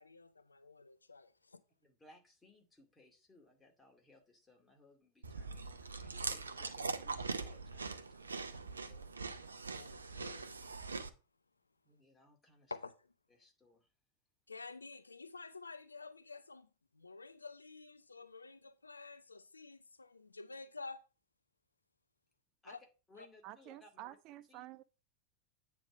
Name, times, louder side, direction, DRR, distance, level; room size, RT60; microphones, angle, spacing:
voice 1, 0.0-1.6 9.7-10.6 12.7-13.0 14.5-16.7 16.9-21.0 22.7-22.8 23.2-23.3, left 3 dB, 80° left, 0.5 m, -50 dB
voice 2, 1.8-9.1 11.8-12.7 13.3-13.9 22.6-22.8 23.1-24.2 24.5-24.7, left 2 dB, 10° left, 2.4 m, -63 dB
Chewing mastication, 5.2-11.1, right 4 dB, 75° right, 0.7 m, -42 dB
voice 3, 23.4-24.8, right 15 dB, 40° right, 0.4 m, -50 dB
8.7 x 3.6 x 6.2 m
figure-of-eight pair, 90°, 0 cm